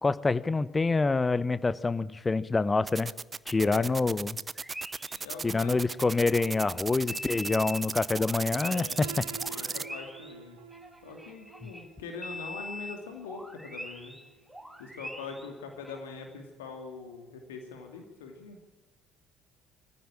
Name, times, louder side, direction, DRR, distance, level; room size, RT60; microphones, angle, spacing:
voice 1, 0.0-3.1 3.5-4.4 5.4-9.1, left 3 dB, 20° left, 16 dB, 1.0 m, -26 dB
sound 1, 2.9-9.8, right 4 dB, 25° right, 0.6 m, -35 dB
voice 2, 3.6-4.2 5.2-5.8 8.5-10.6 11.0-14.1 14.8-18.6, left 4 dB, 75° left, 4 dB, 2.5 m, -43 dB
sound 2, 4.5-6.8 7.1-11.9 12.2-16.0, left 1 dB, 5° right, 2.5 m, -44 dB
Piano, 9.0-14.9, right 7 dB, 75° right, 1.2 m, -49 dB
23.0 x 15.5 x 8.9 m, 1.1 s
figure-of-eight pair, 55°, 0 cm